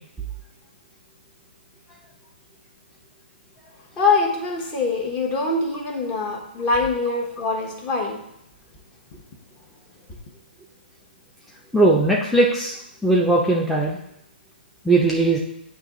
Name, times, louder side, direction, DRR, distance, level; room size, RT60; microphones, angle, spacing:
voice 1, 4.0-8.2 9.1-9.2, left 3 dB, 25° left, 2 dB, 1.1 m, -23 dB
voice 2, 11.7-12.7 13.0-14.0 14.8-15.4, right 2 dB, ahead, -4 dB, 0.6 m, -18 dB
8.8 x 3.0 x 3.8 m, 0.79 s
hypercardioid pair, 135°, 6 cm